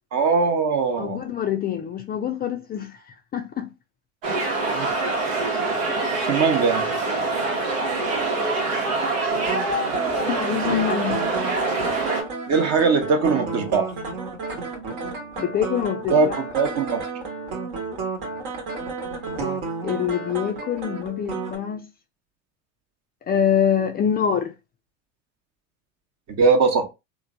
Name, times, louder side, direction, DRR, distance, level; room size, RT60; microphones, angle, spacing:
voice 1, 0.1-1.2 4.7-4.9 6.2-6.9 12.5-13.9 16.1-17.0 26.3-26.8, right 4 dB, 40° right, 0.9 m, -20 dB
voice 2, 1.0-3.7 6.3-6.5 10.3-11.3 15.4-16.4 19.8-21.9 23.3-24.5, left 8 dB, 25° left, 0.3 m, -25 dB
sound 1, 4.2-12.2, right 3 dB, 85° right, 0.9 m, -25 dB
sound 2, 9.3-21.6, right 4 dB, 60° right, 1.1 m, -32 dB
3.0 x 2.1 x 2.5 m
hypercardioid pair, 85°, 39 cm